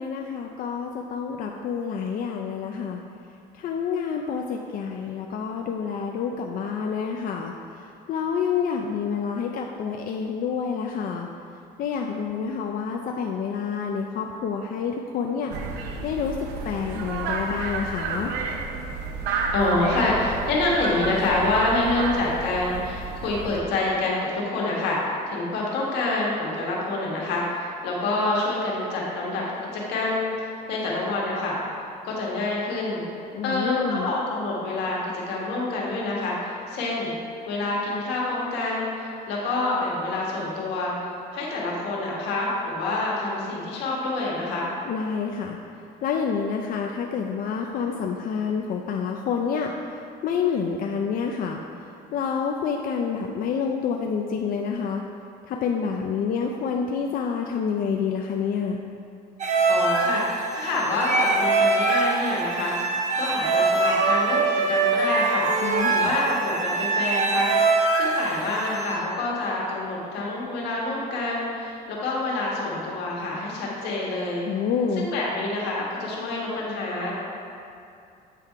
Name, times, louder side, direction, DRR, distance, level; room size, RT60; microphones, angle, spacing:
voice 1, 0.0-3.0 3.6-7.5 7.8-11.3 11.8-15.5 16.0-16.4 16.6-18.3 33.3-34.1 44.9-45.6 46.0-51.6 52.1-55.0 55.5-58.8 65.6-66.2 74.4-75.1, left 6 dB, 55° left, 2 dB, 0.4 m, -28 dB
sound 1, 15.5-23.6, right 4 dB, 85° right, 0.6 m, -31 dB
voice 2, 19.5-31.6 32.0-33.0 33.4-37.1 37.4-44.7 59.7-64.4 64.7-67.5 67.9-74.4 74.9-77.1, left 2 dB, 85° left, -4 dB, 1.5 m, -27 dB
sound 2, 59.4-68.9, right 3 dB, 45° right, 0.8 m, -23 dB
8.3 x 3.5 x 4.5 m, 2.5 s
cardioid pair, 110°, 17 cm